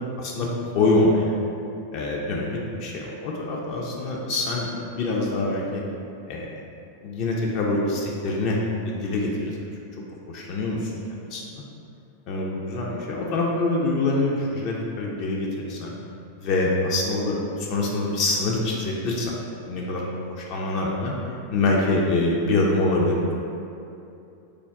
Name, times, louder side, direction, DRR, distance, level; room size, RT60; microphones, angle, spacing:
voice 1, 0.2-0.5 0.7-1.3 1.9-5.8 6.3-6.5 7.0-8.6 8.9-9.6 10.3-10.9 11.3-11.6 12.3-15.9 16.4-19.4 19.7-21.1 21.5-23.3, left 2 dB, 45° left, -3 dB, 0.4 m, -25 dB
3.3 x 2.2 x 3.5 m, 2.7 s
figure-of-eight pair, 90°, 0 cm